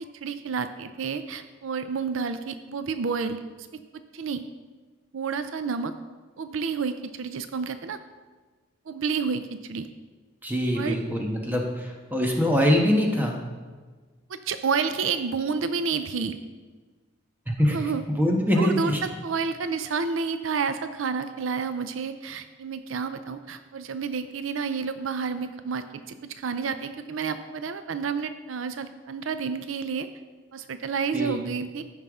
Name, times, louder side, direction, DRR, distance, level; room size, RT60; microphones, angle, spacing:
voice 1, 0.2-3.7 4.1-4.5 5.1-5.9 6.4-8.0 8.9-9.9 10.8-11.0 14.3-16.4 17.7-18.0 18.6-30.1 30.5-31.8, right 5 dB, 75° right, 10 dB, 0.5 m, -30 dB
voice 2, 10.4-13.4 17.5-17.8 18.1-19.0 31.1-31.4, equal, 10° right, 0 dB, 1.2 m, -23 dB
14.5 x 5.6 x 3.6 m, 1.4 s
head